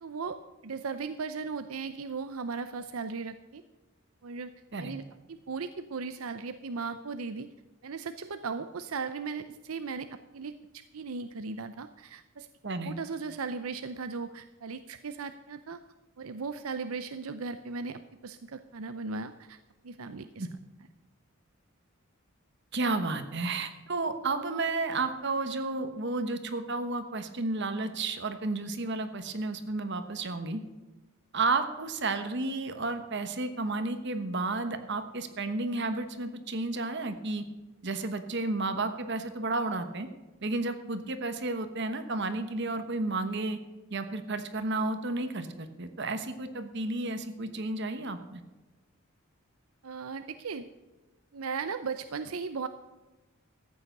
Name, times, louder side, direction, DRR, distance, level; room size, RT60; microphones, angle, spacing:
voice 1, 0.0-3.6 4.2-4.5 4.8-5.0 5.3-7.5 7.8-12.5 12.8-15.8 16.2-19.6 19.8-20.5 49.8-50.7 51.3-52.7, right 4 dB, 85° right, 10 dB, 0.6 m, -37 dB
voice 2, 12.6-12.9 20.4-20.5 22.7-30.6 31.3-37.5 37.8-40.1 40.4-43.6 43.9-48.4, right 3 dB, 55° right, 8 dB, 1.1 m, -32 dB
14.0 x 8.7 x 6.7 m, 1.1 s
head